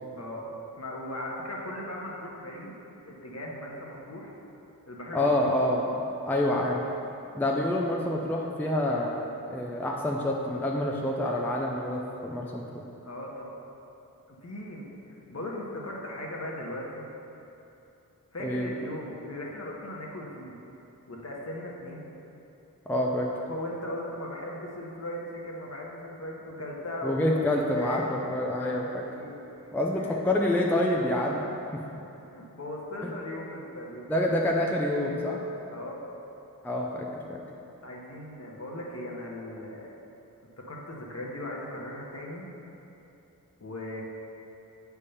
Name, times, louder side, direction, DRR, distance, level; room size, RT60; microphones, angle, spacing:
voice 1, 0.1-0.5 0.8-2.7 3.1-4.3 4.9-5.3 13.0-13.5 14.3-17.0 18.3-20.6 21.1-22.1 23.5-29.4 29.6-30.3 30.9-31.0 32.3-34.2 35.7-36.1 37.8-39.9 40.6-42.5 43.6-44.0, left 1 dB, 45° left, -2 dB, 1.1 m, -38 dB
voice 2, 5.1-5.9 6.2-6.8 7.3-9.2 9.5-12.6 18.4-18.7 22.9-23.3 27.0-29.0 29.7-31.4 33.0-33.1 34.1-35.4 36.6-37.4, left 1 dB, 5° left, -1 dB, 0.5 m, -27 dB
8.2 x 3.5 x 5.6 m, 2.9 s
wide cardioid pair, 80°, 35 cm